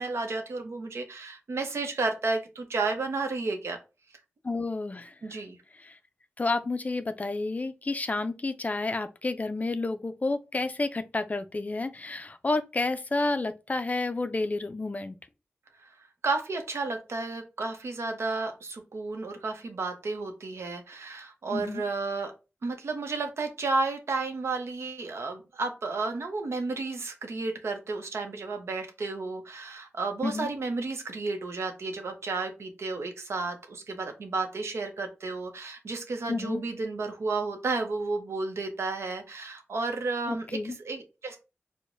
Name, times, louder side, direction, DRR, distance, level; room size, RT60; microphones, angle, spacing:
voice 1, 0.0-3.8 5.2-5.6 15.8-15.9 16.2-22.3 22.6-41.4, right 3 dB, 75° right, 0.7 m, -32 dB
voice 2, 4.4-5.1 5.8-6.0 6.4-15.2 21.5-21.8 30.2-30.5 36.3-36.6 40.3-40.8, left 3 dB, 35° left, 0.3 m, -30 dB
4.5 x 2.1 x 2.5 m
cardioid pair, 60°, 5 cm